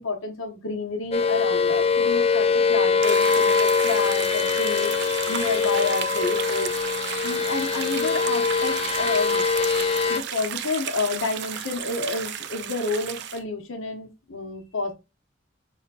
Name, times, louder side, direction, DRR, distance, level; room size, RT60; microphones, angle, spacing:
voice 1, 0.0-4.9 5.3-6.9 7.2-9.4 10.1-14.9, left 3 dB, 90° left, 3 dB, 1.2 m, -29 dB
sound 1, 1.1-10.2, left 5 dB, 30° left, 0.3 m, -23 dB
sound 2, 3.0-13.4, right 9 dB, 60° right, 0.4 m, -33 dB
5.1 x 3.6 x 2.5 m, 0.25 s
head